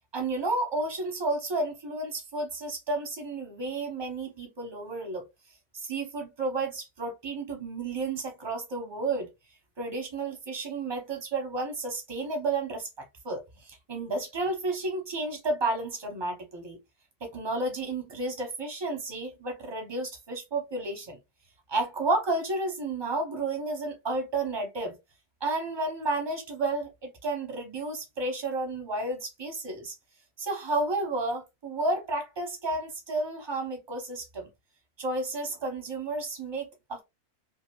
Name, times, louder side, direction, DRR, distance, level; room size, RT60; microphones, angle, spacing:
voice 1, 0.1-5.2 5.7-9.3 9.8-16.8 17.2-21.2 21.7-25.0 25.4-29.9 30.4-34.5 35.0-37.0, right 2 dB, 20° right, 0.9 m, -32 dB
2.9 x 2.7 x 2.9 m
omnidirectional pair, 1.4 m